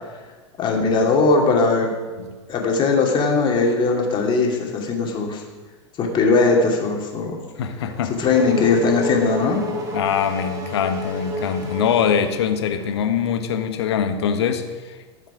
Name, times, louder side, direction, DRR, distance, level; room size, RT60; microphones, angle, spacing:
voice 1, 0.6-1.9 2.5-5.4 6.0-7.4 8.2-9.6, left 3 dB, 30° left, 0 dB, 2.5 m, -19 dB
voice 2, 7.6-8.1 9.9-15.0, left 7 dB, 65° left, 8 dB, 1.2 m, -23 dB
Race car auto racing / Accelerating revving vroom, 7.6-12.9, left 1 dB, 20° right, 3.1 m, -30 dB
13.5 x 7.5 x 5.0 m, 1.3 s
figure-of-eight pair, 90°, 15 cm